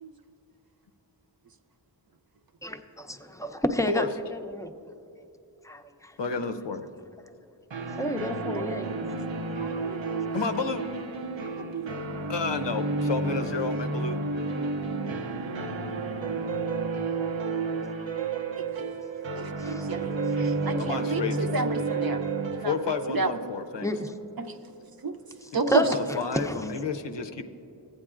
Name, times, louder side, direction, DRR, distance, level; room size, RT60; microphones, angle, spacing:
voice 1, 2.6-4.1 4.3-4.7 5.6-6.1 8.0-8.9 19.6-19.8 23.8-24.1 25.7-26.6, equal, 5° left, 7 dB, 0.5 m, -30 dB
voice 2, 6.2-6.9 10.3-10.9 12.3-14.2 20.8-21.4 22.6-23.9 25.5-27.4, left 4 dB, 70° left, 7 dB, 0.6 m, -31 dB
sound 1, 7.7-24.4, right 3 dB, 90° right, 0.7 m, -31 dB
voice 3, 8.4-8.8 9.6-10.3 11.7-11.9 18.6-18.7 19.3-22.2 22.6-23.6 24.4-24.6 25.0-25.1 25.5-25.9, right 3 dB, 55° right, 6 dB, 0.6 m, -31 dB
15.0 x 8.8 x 2.4 m, 2.7 s
wide cardioid pair, 55°, 44 cm